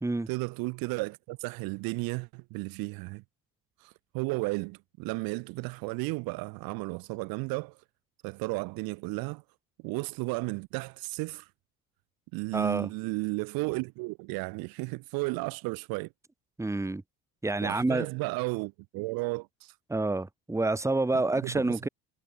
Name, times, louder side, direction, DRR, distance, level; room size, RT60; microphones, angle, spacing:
voice 1, 0.3-3.2 3.8-7.8 8.2-9.4 9.8-11.5 12.3-16.1 17.6-19.7 21.4-21.9, right 26 dB, 50° right, 0.7 m, -34 dB
voice 2, 12.5-12.9 16.6-17.0 17.4-18.1 19.9-21.9, right 2 dB, 5° right, 1.2 m, -28 dB
figure-of-eight pair, 55°, 46 cm